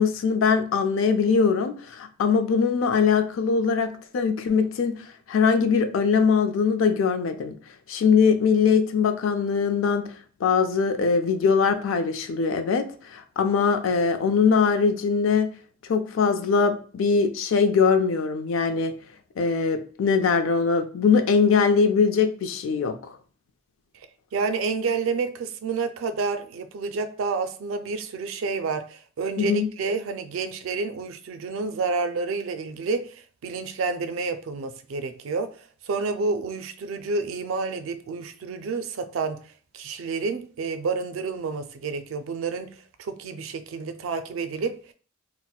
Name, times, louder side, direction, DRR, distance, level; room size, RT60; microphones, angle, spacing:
voice 1, 0.0-4.9 5.3-7.6 7.9-10.0 10.4-12.8 13.1-15.5 15.9-18.9 19.4-23.0 29.4-29.7, left 5 dB, 85° left, 0.4 m, -21 dB
voice 2, 24.3-35.5 35.8-39.4 39.7-42.7 43.0-44.9, right 4 dB, 90° right, 0.3 m, -29 dB
4.1 x 2.0 x 2.3 m
head